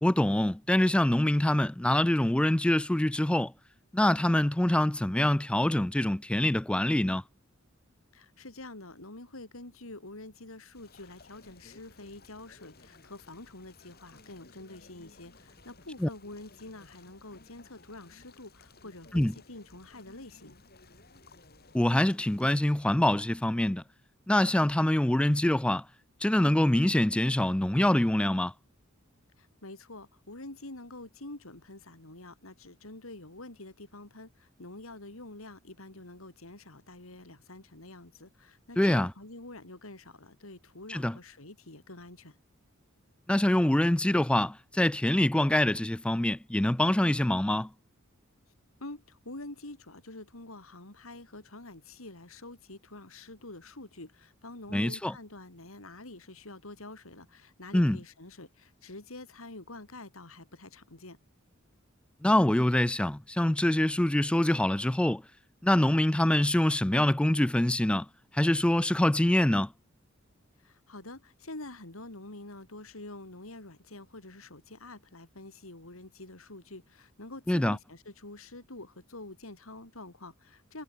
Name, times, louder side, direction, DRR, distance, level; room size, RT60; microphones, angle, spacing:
voice 1, 0.0-3.5 3.9-7.2 16.0-16.1 19.1-19.3 21.7-23.8 24.3-25.8 26.2-28.5 38.8-39.1 40.9-41.2 43.3-47.7 54.7-55.1 57.7-58.0 62.2-65.2 65.6-68.1 68.3-69.7 77.5-77.8, left 1 dB, 5° left, 0.3 m, -25 dB
voice 2, 8.1-20.6 29.4-42.4 48.8-61.2 70.6-80.8, left 2 dB, 85° left, 3.9 m, -47 dB
sound 1, 10.7-22.4, left 3 dB, 50° left, 6.8 m, -57 dB
head